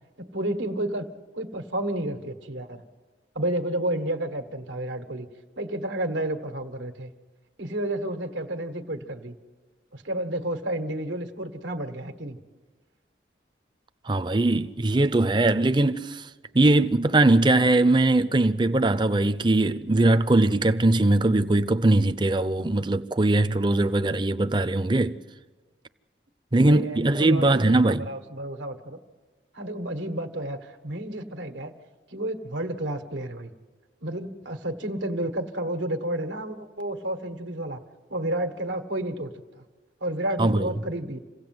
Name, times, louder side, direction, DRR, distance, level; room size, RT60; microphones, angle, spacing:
voice 1, 0.2-1.1 1.3-2.8 3.3-5.3 5.6-7.1 7.6-9.4 9.9-12.4 26.5-29.0 29.5-31.7 32.1-33.5 34.0-37.8 38.1-39.6 40.0-41.2, right 1 dB, 90° right, 1.6 m, -31 dB
voice 2, 14.1-16.3 16.5-25.2 26.5-28.1 40.4-40.7, right 2 dB, 25° right, 0.6 m, -21 dB
28.0 x 17.0 x 7.8 m
head